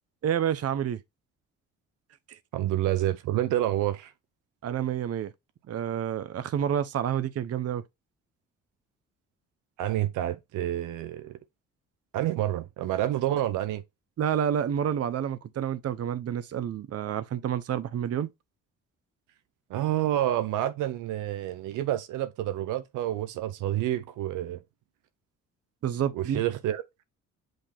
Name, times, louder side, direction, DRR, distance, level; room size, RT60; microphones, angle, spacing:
voice 1, 0.2-1.0 2.3-2.4 4.6-5.3 5.7-7.8 14.2-18.3 25.8-26.4, right 9 dB, 55° right, 0.8 m, -29 dB
voice 2, 2.5-4.1 9.8-11.4 12.1-13.8 19.7-24.6 26.1-27.0, right 13 dB, 90° right, 0.8 m, -28 dB
7.9 x 2.9 x 4.3 m
cardioid pair, 90°, 30 cm